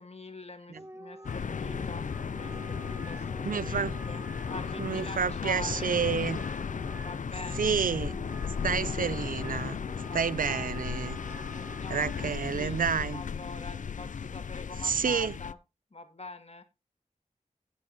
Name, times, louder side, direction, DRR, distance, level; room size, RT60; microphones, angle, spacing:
voice 1, 0.0-6.0 6.9-7.8 10.0-15.6 15.9-16.6, left 3 dB, 50° left, 2.0 m, -45 dB
Wind instrument woodwind instrument, 0.7-12.4, right 1 dB, 20° right, 0.9 m, -47 dB
sound 1, 1.2-15.5, left 6 dB, 70° left, 0.4 m, -35 dB
voice 2, 3.4-4.0 4.8-6.4 7.6-8.1 8.6-9.8 10.1-11.2 11.9-13.2 14.8-15.3, right 6 dB, 85° right, 0.5 m, -29 dB
17.0 x 7.3 x 2.8 m
wide cardioid pair, 75°, 14 cm